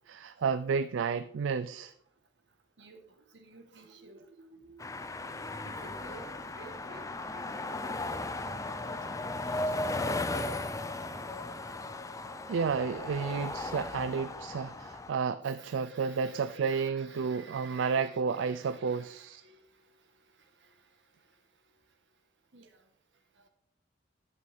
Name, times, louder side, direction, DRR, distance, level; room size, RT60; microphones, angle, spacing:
voice 1, 0.1-1.9 12.5-19.4, right 5 dB, 85° right, 0.4 m, -31 dB
voice 2, 2.8-4.9 5.3-5.4 5.6-8.3 8.7-9.4 9.7-10.0 15.4-19.7 20.6-20.9 22.5-22.8 23.4-23.5, right 3 dB, 70° right, 1.5 m, -53 dB
sound 1, 4.8-15.1, left 2 dB, 15° left, 0.5 m, -36 dB
11.0 x 8.4 x 3.6 m
head